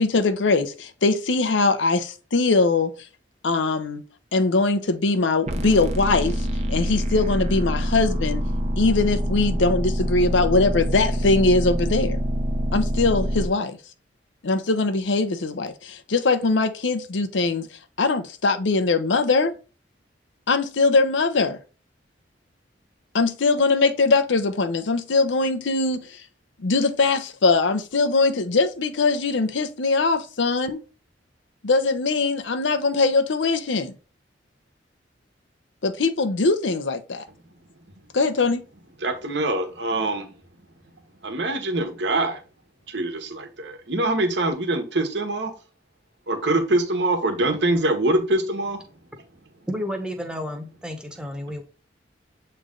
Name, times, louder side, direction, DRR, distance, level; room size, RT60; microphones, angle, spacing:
voice 1, 0.0-2.9 3.4-4.0 4.3-6.3 6.7-8.4 8.8-12.2 12.7-13.8 14.4-17.7 18.0-19.6 20.5-21.6 23.1-26.0 26.6-30.8 31.6-33.9 35.8-37.2 38.1-38.6, left 3 dB, 80° left, 0.7 m, -21 dB
sound 1, 5.5-13.5, equal, 35° right, 0.7 m, -25 dB
voice 2, 39.0-40.3 41.2-42.4 42.9-45.5 46.3-48.8, right 2 dB, 65° right, 1.3 m, -24 dB
voice 3, 49.7-51.6, equal, 5° right, 1.0 m, -31 dB
7.6 x 3.3 x 3.8 m
head